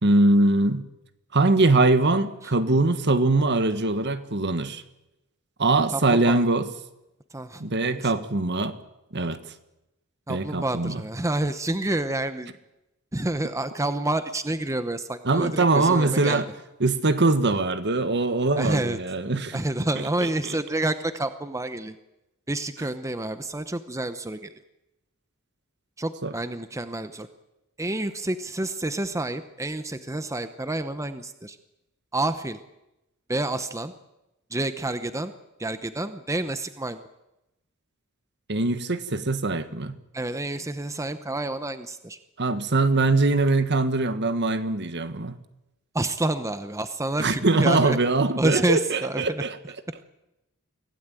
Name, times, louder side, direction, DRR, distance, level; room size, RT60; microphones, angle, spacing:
voice 1, 0.0-0.8 1.3-4.8 5.6-6.7 7.6-8.8 9.1-9.4 10.3-11.0 15.2-16.5 16.8-19.6 20.2-20.5 26.2-26.3 38.5-40.0 42.4-45.4 47.2-49.6, right 2 dB, 55° right, 11 dB, 1.5 m, -22 dB
voice 2, 5.9-6.5 7.3-7.6 7.9-8.1 10.3-12.5 13.1-16.4 17.5-17.6 18.6-19.0 19.5-22.0 22.5-24.5 26.0-27.3 27.8-31.6 32.1-32.6 33.3-33.9 34.5-35.3 35.6-37.0 40.1-42.2 45.9-48.0 48.4-49.4, right 2 dB, 15° right, 10 dB, 0.8 m, -28 dB
24.5 x 16.5 x 9.0 m, 0.94 s
head